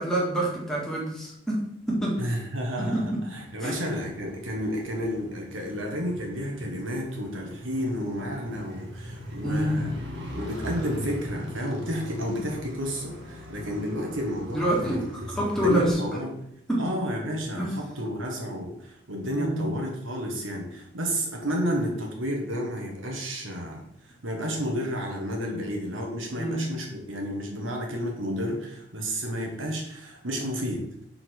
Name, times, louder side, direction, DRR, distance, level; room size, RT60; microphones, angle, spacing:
voice 1, 0.0-2.2 2.8-3.3 3.6-3.8 9.4-9.9 14.5-15.0 15.4-16.0 16.7-16.9 17.6-17.7 19.3-19.7 26.4-26.7, right 1 dB, 5° left, -5 dB, 1.8 m, -27 dB
voice 2, 2.2-9.9 10.3-15.3 15.6-16.3 16.8-23.8 24.2-30.8, equal, 85° right, 1 dB, 1.7 m, -31 dB
Motorcycle, 3.3-15.9, equal, 70° right, 1.7 m, -39 dB
5.1 x 4.3 x 6.1 m, 0.73 s
head